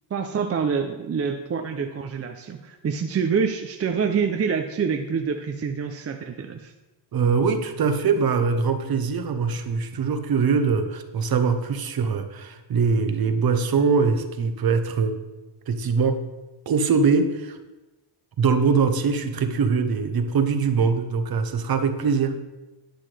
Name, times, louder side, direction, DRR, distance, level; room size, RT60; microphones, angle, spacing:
voice 1, 0.1-6.7, right 6 dB, 30° right, 5 dB, 0.5 m, -26 dB
voice 2, 7.1-15.2 15.7-16.2 16.7-17.6 18.4-22.4, right 5 dB, 45° right, 8 dB, 0.9 m, -22 dB
11.5 x 9.5 x 3.3 m, 1.1 s
wide cardioid pair, 180°, 49 cm